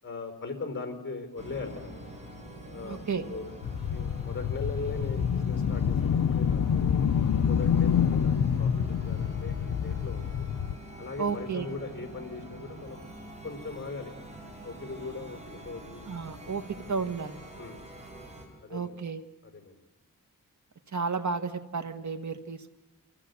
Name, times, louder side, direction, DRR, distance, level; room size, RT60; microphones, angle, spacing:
voice 1, 0.0-1.9 2.7-3.5 3.8-7.1 7.4-8.7 9.0-10.5 11.0-13.0 13.4-14.1 14.6-16.3 17.6-17.8 18.6-19.0 19.4-19.8, left 3 dB, 35° left, 6 dB, 4.3 m, -39 dB
sound 1, 1.4-18.5, right 1 dB, 20° right, 6.0 m, -45 dB
voice 2, 2.8-3.2 11.2-11.7 16.1-17.4 18.7-19.2 20.9-22.8, right 5 dB, 60° right, 8 dB, 1.4 m, -32 dB
sound 2, 3.6-10.8, left 7 dB, 70° left, 0.6 m, -27 dB
28.5 x 15.0 x 8.3 m, 1.2 s
wide cardioid pair, 115°, 33 cm